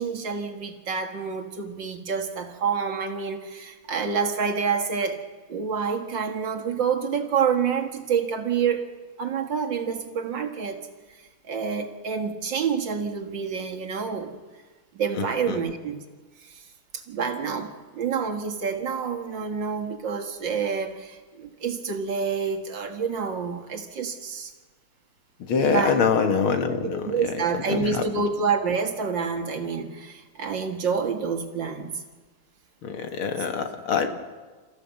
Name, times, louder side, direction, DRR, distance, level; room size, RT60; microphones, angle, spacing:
voice 1, 0.0-5.2 5.5-8.9 9.2-10.8 11.1-14.4 14.9-16.0 16.4-16.6 16.9-24.5 25.7-26.0 26.9-32.0 33.4-33.5, right 6 dB, 60° right, 5 dB, 2.3 m, -28 dB
voice 2, 15.2-15.6 25.5-27.0 27.7-28.0 32.8-34.1, left 6 dB, 75° left, 6 dB, 2.5 m, -24 dB
30.0 x 15.0 x 7.1 m, 1.3 s
omnidirectional pair, 2.3 m